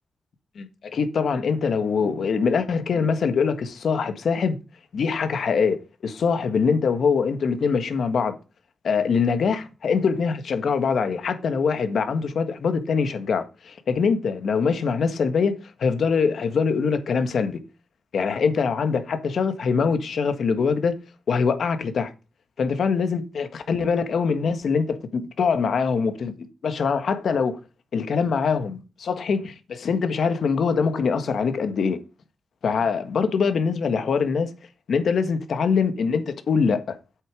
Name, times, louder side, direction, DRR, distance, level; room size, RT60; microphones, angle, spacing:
voice 1, 0.9-4.6 4.9-5.8 6.0-8.4 8.8-17.6 18.1-21.0 21.3-22.1 22.6-27.6 27.9-32.0 32.6-34.5 34.9-37.0, left 5 dB, 70° left, 1.5 m, -23 dB
8.3 x 6.9 x 5.1 m
wide cardioid pair, 115°, 0 cm